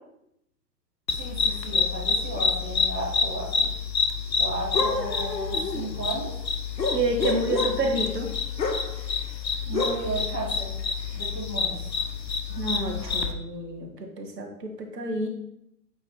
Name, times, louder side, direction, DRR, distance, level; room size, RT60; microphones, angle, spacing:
sound 1, 1.1-13.3, left 4 dB, 85° left, 0.8 m, -27 dB
voice 1, 1.1-3.7 4.4-6.4 9.6-10.7 11.1-11.8, right 2 dB, 10° left, -7 dB, 0.4 m, -34 dB
voice 2, 6.9-8.3 12.5-15.3, right 2 dB, 75° right, 2 dB, 1.3 m, -29 dB
8.7 x 3.0 x 4.2 m, 0.78 s
figure-of-eight pair, 110°, 50 cm